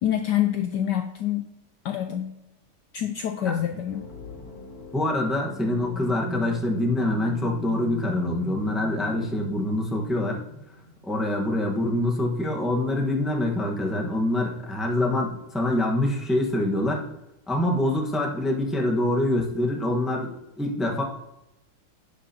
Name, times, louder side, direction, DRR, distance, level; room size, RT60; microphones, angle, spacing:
voice 1, 0.0-1.5 1.8-2.4 2.9-4.0, left 10 dB, 85° left, 7 dB, 0.9 m, -26 dB
sound 1, 3.9-11.6, left 1 dB, 45° left, 2.1 m, -38 dB
voice 2, 4.9-10.4 11.0-17.0 17.5-21.0, left 1 dB, ahead, 0 dB, 0.7 m, -25 dB
10.5 x 8.5 x 2.9 m, 0.92 s
omnidirectional pair, 2.4 m